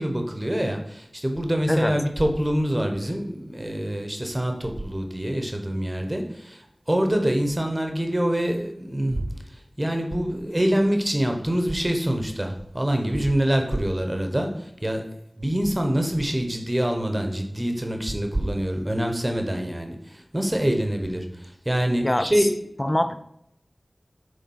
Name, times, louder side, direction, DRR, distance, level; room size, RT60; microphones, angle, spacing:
voice 1, 0.0-6.6 6.9-9.3 9.8-15.0 15.4-22.5, right 1 dB, 20° right, 4 dB, 1.1 m, -25 dB
voice 2, 22.0-22.5 22.8-23.2, left 1 dB, 25° left, 10 dB, 0.5 m, -24 dB
8.5 x 3.5 x 5.6 m, 0.76 s
wide cardioid pair, 60°, 0 cm